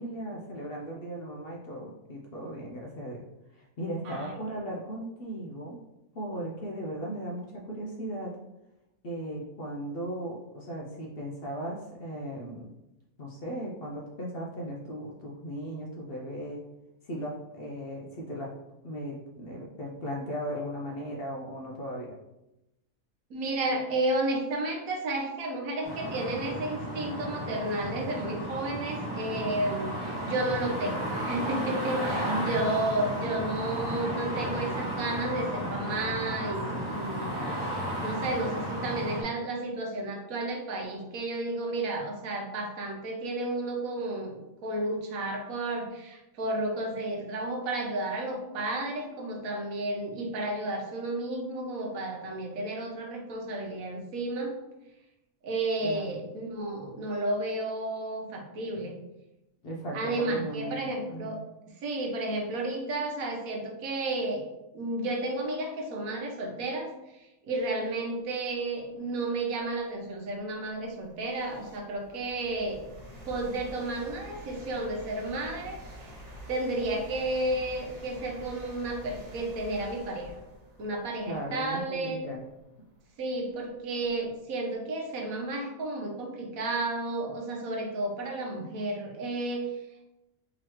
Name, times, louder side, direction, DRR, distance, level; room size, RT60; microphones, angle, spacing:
voice 1, 0.0-3.2 3.5-5.8 6.1-8.4 9.0-12.7 13.2-16.6 17.0-18.5 18.8-22.1 32.1-32.5 55.8-56.2 59.6-61.3 81.3-82.4, right 1 dB, 55° left, -2 dB, 0.7 m, -37 dB
voice 2, 23.3-54.5 55.4-58.9 59.9-61.4 61.8-64.5 64.7-72.8 73.3-76.1 76.5-80.4 80.8-82.2 83.2-89.7, right 2 dB, 80° right, 1 dB, 1.2 m, -32 dB
sound 1, 25.8-39.2, equal, 15° right, 1.3 m, -33 dB
sound 2, 68.9-69.0 69.6-84.4, equal, 35° right, 0.8 m, -48 dB
3.8 x 3.1 x 2.9 m, 0.93 s
omnidirectional pair, 1.5 m